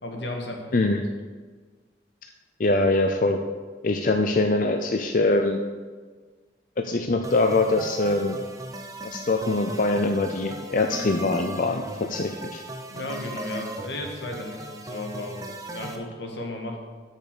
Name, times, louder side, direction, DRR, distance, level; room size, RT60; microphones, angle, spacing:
voice 1, 0.0-0.7 12.9-15.4 15.7-16.8, left 1 dB, 80° left, 2 dB, 1.8 m, -34 dB
voice 2, 0.7-1.0 2.6-3.4 3.8-5.6 6.8-8.4 9.1-12.6, left 2 dB, 50° left, 5 dB, 0.6 m, -23 dB
sound 1, 7.2-16.0, right 1 dB, 20° right, 0.9 m, -38 dB
8.6 x 6.6 x 6.8 m, 1.5 s
head